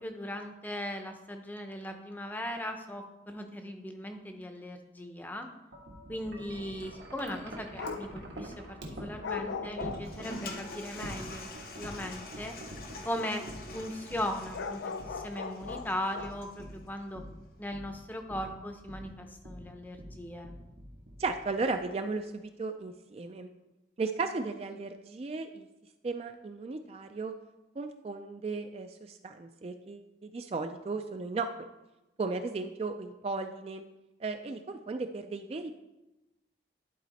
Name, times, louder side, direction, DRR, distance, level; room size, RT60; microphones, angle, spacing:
voice 1, 0.0-5.5 6.1-11.4 11.8-12.6 13.0-13.4 13.7-17.2 17.6-20.5, left 1 dB, 10° left, 5 dB, 0.6 m, -38 dB
Wind chime, 5.7-21.9, equal, 80° right, 1.5 m, -46 dB
sound 1, 7.8-8.2 9.2-10.4 14.5-16.5, left 5 dB, 85° left, 0.5 m, -38 dB
Toilet flush, 9.8-16.7, left 2 dB, 50° left, 1.0 m, -46 dB
voice 2, 21.2-23.5 24.0-25.7 26.0-27.3 27.8-31.5 32.2-33.8 34.2-35.7, right 3 dB, 35° right, 7 dB, 0.3 m, -35 dB
11.0 x 4.2 x 4.1 m, 0.99 s
head